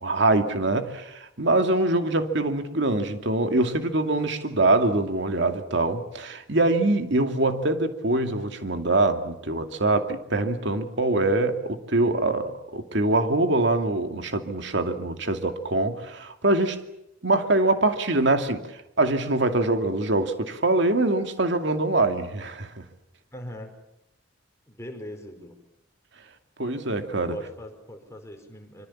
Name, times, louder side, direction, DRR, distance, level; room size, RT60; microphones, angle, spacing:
voice 1, 0.0-16.8 17.2-18.7 19.0-22.8 26.6-27.4, right 2 dB, 65° right, 2.4 m, -24 dB
voice 2, 23.3-23.8 24.7-25.6 27.3-28.9, left 1 dB, 15° left, 5.0 m, -41 dB
26.0 x 25.5 x 7.3 m
head